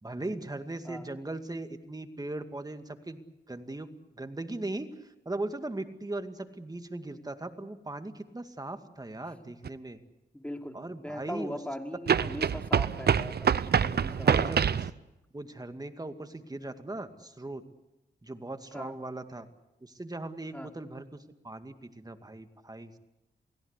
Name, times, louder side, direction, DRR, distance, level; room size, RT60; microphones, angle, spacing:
voice 1, 0.0-3.2 3.5-3.9 4.2-10.0 10.7-11.6 14.1-14.7 15.3-17.6 18.2-19.5 19.8-21.1 21.4-23.0, right 2 dB, 20° right, 8 dB, 2.2 m, -39 dB
sound 1, 9.6-9.7 12.1-14.9, right 7 dB, 65° right, 0.8 m, -26 dB
voice 2, 10.3-14.5 18.7-18.9 20.5-20.7, left 1 dB, 5° left, 4 dB, 3.1 m, -40 dB
28.5 x 18.0 x 8.3 m, 0.96 s
cardioid pair, 65°, 18 cm